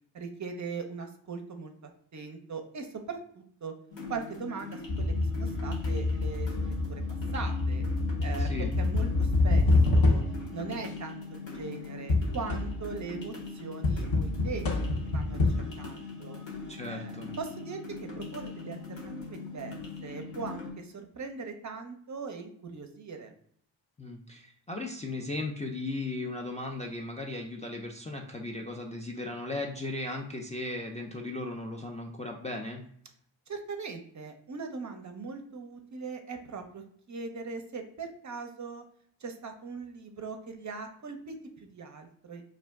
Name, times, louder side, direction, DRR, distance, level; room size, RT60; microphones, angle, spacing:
voice 1, 0.1-3.7 4.1-7.0 7.3-7.8 8.2-9.7 9.9-10.2 10.5-15.5 15.8-16.4 16.9-19.8 20.0-23.3 33.5-38.8 39.2-42.4, right 4 dB, 40° right, 5 dB, 0.5 m, -40 dB
sound 1, 3.9-20.7, left 3 dB, 70° left, 1.1 m, -41 dB
sound 2, 4.9-10.5 12.1-13.0 13.8-15.5, left 2 dB, 45° left, 0.7 m, -27 dB
voice 2, 8.4-8.7 16.7-17.3 24.0-32.8, left 2 dB, 15° left, -1 dB, 0.4 m, -36 dB
2.5 x 2.1 x 3.4 m, 0.63 s
supercardioid pair, 40°, 47 cm